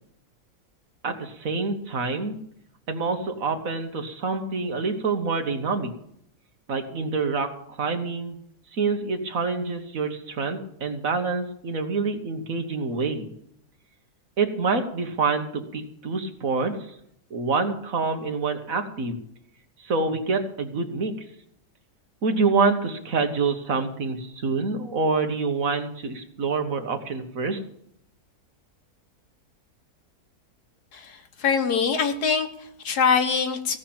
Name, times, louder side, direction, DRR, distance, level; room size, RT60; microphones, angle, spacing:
voice 1, 1.0-2.4 2.9-5.9 6.7-8.4 8.7-13.3 14.4-16.8 17.3-19.2 19.8-21.1 22.2-27.6, right 4 dB, 60° right, 6 dB, 1.8 m, -26 dB
voice 2, 30.9-33.8, left 6 dB, 75° left, 7 dB, 1.9 m, -24 dB
16.5 x 5.9 x 8.7 m, 0.70 s
omnidirectional pair, 1.7 m